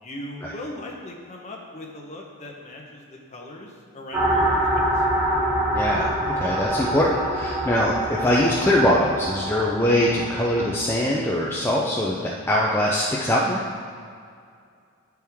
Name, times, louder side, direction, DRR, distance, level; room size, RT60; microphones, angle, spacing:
voice 1, 0.0-5.0, left 1 dB, 30° left, 0 dB, 0.8 m, -39 dB
sound 1, 4.1-10.9, right 1 dB, 10° right, 1.3 m, -25 dB
voice 2, 5.7-13.6, left 1 dB, 10° left, -5 dB, 0.4 m, -22 dB
9.8 x 4.6 x 3.5 m, 2.2 s
head